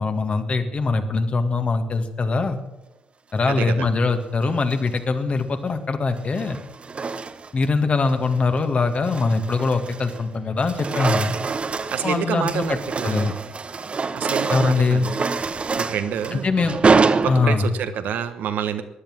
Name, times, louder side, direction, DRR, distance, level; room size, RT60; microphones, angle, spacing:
voice 1, 0.0-2.6 3.3-6.6 7.5-11.4 12.0-12.8 13.0-13.3 14.5-15.1 16.3-16.8 17.3-17.7, left 4 dB, 45° left, 7 dB, 1.9 m, -22 dB
voice 2, 3.5-3.9 11.9-13.3 14.1-15.2 15.8-16.5 17.2-18.8, right 8 dB, 70° right, 10 dB, 1.2 m, -27 dB
sound 1, 4.5-5.0 6.1-7.7 8.1-8.4 8.8-10.3 10.5-17.9, right 4 dB, 40° right, 1.0 m, -26 dB
16.0 x 10.5 x 7.3 m, 0.99 s
hypercardioid pair, 45°, 3 cm